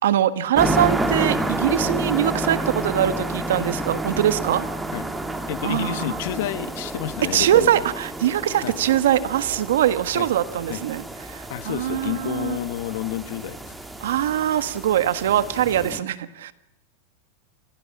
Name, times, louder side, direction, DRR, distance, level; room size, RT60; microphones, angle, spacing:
voice 1, 0.0-4.7 5.6-6.2 7.3-12.6 14.0-16.5, right 11 dB, 85° right, 13 dB, 1.5 m, -22 dB
sound 1, 0.6-16.0, right 1 dB, 5° right, 1.8 m, -30 dB
voice 2, 5.5-7.8 8.6-8.7 10.1-10.3 10.7-10.8 11.5-13.7, left 13 dB, 65° left, 14 dB, 1.3 m, -30 dB
27.5 x 16.5 x 7.3 m, 0.88 s
supercardioid pair, 150°, 0 cm